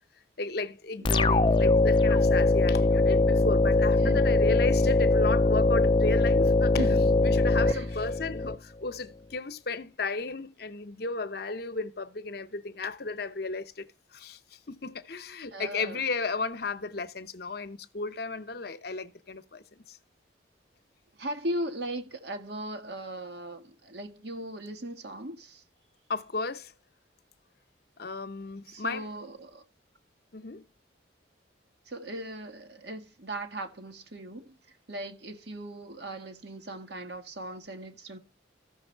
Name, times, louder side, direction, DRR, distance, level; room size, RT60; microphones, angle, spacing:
voice 1, 0.4-6.8 7.2-20.0 26.1-26.7 28.0-29.1 30.3-30.6, left 3 dB, 55° left, 0.8 m, -34 dB
sound 1, 1.0-8.5, left 2 dB, 25° left, 0.5 m, -22 dB
voice 2, 1.0-1.4 4.0-4.2 6.7-7.4 7.6-7.9 15.5-16.0 21.1-25.6 28.7-29.6 31.8-34.6 34.9-38.2, right 1 dB, 60° right, 1.7 m, -38 dB
14.0 x 6.4 x 4.6 m
head